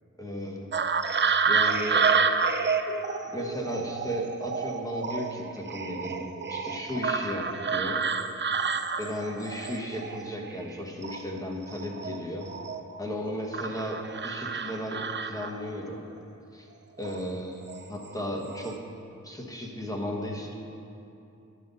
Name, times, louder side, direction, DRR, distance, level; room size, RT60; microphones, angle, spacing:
voice 1, 0.2-0.8 1.4-2.1 3.3-8.1 9.0-12.5 13.0-16.0 16.5-16.7 17.0-18.9 19.2-20.5, equal, 10° left, -1 dB, 1.3 m, -35 dB
sound 1, 0.7-10.7 11.0-13.0 13.5-15.8 17.0-17.2 17.7-18.1 18.4-18.7, right 5 dB, 40° right, 0.4 m, -29 dB
11.0 x 5.5 x 4.1 m, 2.7 s
cardioid pair, 45°, 31 cm